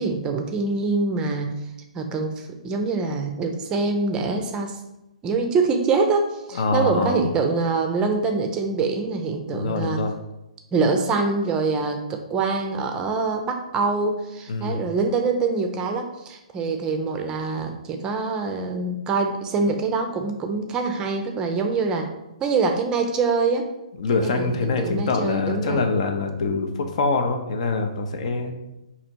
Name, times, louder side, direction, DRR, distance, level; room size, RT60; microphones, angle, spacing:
voice 1, 0.0-1.6 1.9-4.8 5.2-10.1 10.7-22.1 22.4-23.7 24.2-25.9, right 4 dB, 20° right, 5 dB, 0.5 m, -24 dB
voice 2, 6.5-7.2 9.5-10.1 14.5-14.8 24.0-28.5, left 3 dB, 60° left, 5 dB, 0.6 m, -24 dB
4.0 x 2.8 x 4.4 m, 0.91 s
hypercardioid pair, 145°, 4 cm